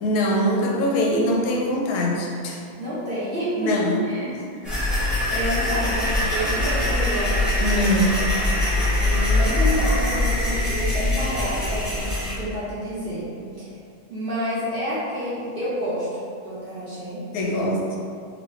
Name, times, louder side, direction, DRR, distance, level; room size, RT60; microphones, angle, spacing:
voice 1, 0.0-2.6 3.6-4.7 7.6-8.2 17.3-17.8, equal, 90° left, -1 dB, 1.1 m, -23 dB
voice 2, 2.8-3.7 4.0-4.3 5.2-7.5 9.0-13.3 13.6-13.7 14.1-16.1 16.4-17.2, equal, 50° right, -10 dB, 0.7 m, -29 dB
sound 1, 4.6-12.3, left 1 dB, ahead, 0.7 m, -23 dB
3.0 x 2.6 x 3.2 m, 2.3 s
omnidirectional pair, 1.6 m